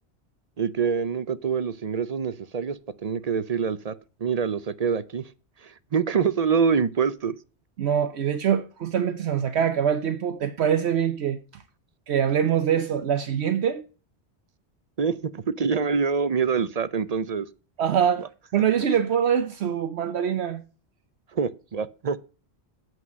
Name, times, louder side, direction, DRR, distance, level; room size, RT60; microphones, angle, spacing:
voice 1, 0.6-3.9 4.2-5.2 5.6-7.4 15.0-17.5 21.3-22.2, right 6 dB, 45° right, 0.6 m, -25 dB
voice 2, 7.8-11.6 12.1-13.8 17.8-20.6, right 8 dB, 75° right, 1.0 m, -24 dB
8.5 x 7.8 x 5.2 m
omnidirectional pair, 1.1 m